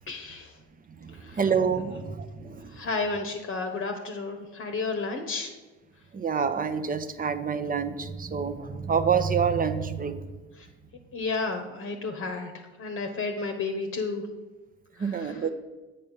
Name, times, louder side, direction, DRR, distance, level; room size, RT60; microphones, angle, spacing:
voice 1, 0.1-0.5 1.2-1.4 2.7-5.5 11.1-14.2 15.0-15.4, left 3 dB, 40° left, 4 dB, 1.0 m, -32 dB
voice 2, 1.0-2.8 6.1-10.3 15.0-15.5, right 6 dB, 25° right, 9 dB, 0.8 m, -27 dB
7.8 x 5.5 x 5.5 m, 1.2 s
hypercardioid pair, 60°, 32 cm